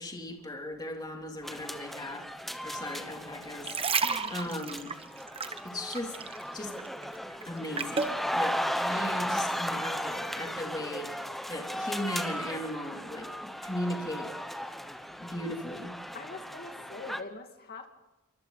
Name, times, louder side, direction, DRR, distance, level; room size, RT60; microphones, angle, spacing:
voice 1, 0.0-2.2 2.6-3.8 4.3-4.9 5.6-6.2 6.5-6.7 7.5-11.2 11.5-14.3 15.2-15.9, left 1 dB, 20° left, 0 dB, 3.3 m, -37 dB
sound 1, 1.4-17.2, equal, ahead, 1.0 m, -36 dB
sound 2, 3.4-6.5 6.8-8.2 8.8-9.0, right 5 dB, 25° right, 1.1 m, -32 dB
voice 2, 4.0-4.3 16.1-17.9, left 3 dB, 45° left, 4 dB, 2.5 m, -43 dB
28.0 x 24.5 x 4.2 m, 1.1 s
head